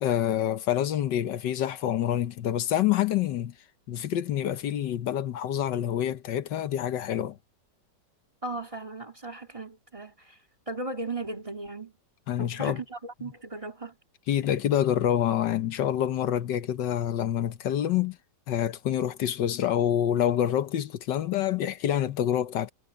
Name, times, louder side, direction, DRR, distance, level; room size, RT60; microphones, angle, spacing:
voice 1, 0.0-3.5 3.9-7.4 12.3-12.8 14.3-18.2 18.5-22.7, left 10 dB, 80° left, 1.6 m, -27 dB
voice 2, 8.4-10.4 10.7-11.9 12.4-14.0, right 2 dB, 20° right, 2.1 m, -37 dB
omnidirectional pair, 1.9 m